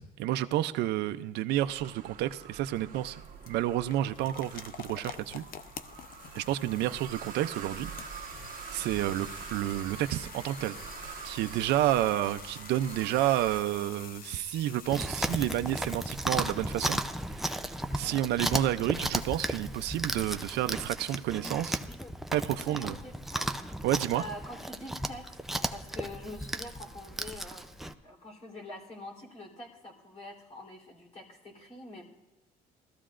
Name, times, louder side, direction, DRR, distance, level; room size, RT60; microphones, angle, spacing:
voice 1, 0.0-3.2 3.5-5.4 6.4-7.9 8.2-8.4 8.7-10.8 11.2-17.0 17.4-17.7 17.9-21.8 22.3-22.9 23.8-24.2, right 13 dB, 80° right, 9 dB, 0.5 m, -30 dB
sound 1, 1.5-13.6, right 7 dB, 50° right, 1.3 m, -45 dB
sound 2, 2.4-17.2, left 8 dB, 60° left, 0.7 m, -48 dB
Chewing mastication, 14.9-27.9, right 1 dB, ahead, 0.5 m, -35 dB
voice 2, 22.0-23.5 24.1-27.7 28.0-32.1, left 1 dB, 40° left, 0 dB, 3.6 m, -45 dB
20.0 x 13.5 x 2.5 m, 1.1 s
cardioid pair, 110°, 17 cm